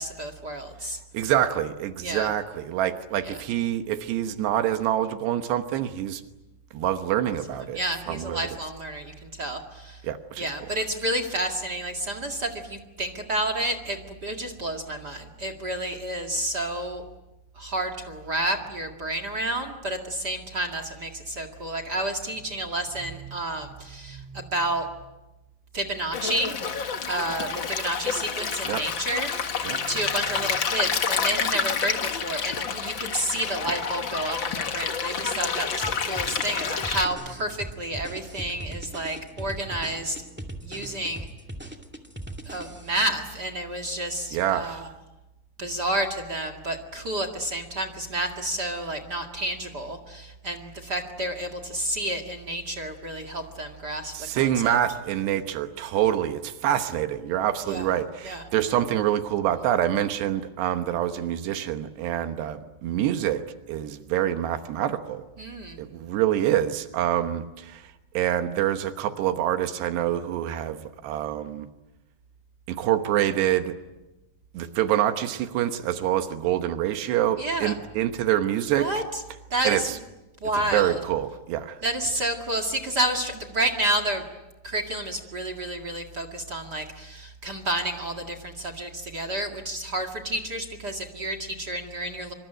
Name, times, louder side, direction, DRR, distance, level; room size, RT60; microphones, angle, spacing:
voice 1, 0.0-1.0 2.0-2.3 3.2-3.4 7.6-10.0 10.4-17.0 17.5-24.9 25.7-40.2 40.6-41.3 42.4-44.9 45.6-54.8 57.6-57.9 58.2-58.4 65.4-65.8 77.4-77.7 78.7-79.2 79.5-80.0 80.4-81.0 81.8-84.2 84.6-92.3, right 1 dB, 35° right, 9 dB, 1.7 m, -30 dB
voice 2, 1.1-6.2 6.7-7.8 8.1-8.6 10.0-10.5 23.0-23.4 24.1-24.5 28.7-28.8 29.6-30.1 44.3-44.8 54.1-63.4 63.7-65.3 65.8-67.8 68.1-70.8 71.0-71.7 72.7-73.8 74.5-79.0 79.6-80.0 80.5-81.8 82.1-82.2, right 11 dB, 80° right, 8 dB, 3.3 m, -26 dB
Stream, 26.1-37.0, left 6 dB, 85° left, 1.0 m, -29 dB
sound 1, 35.8-43.1, right 1 dB, 10° right, 0.6 m, -39 dB
26.0 x 25.0 x 9.1 m, 0.99 s
omnidirectional pair, 4.8 m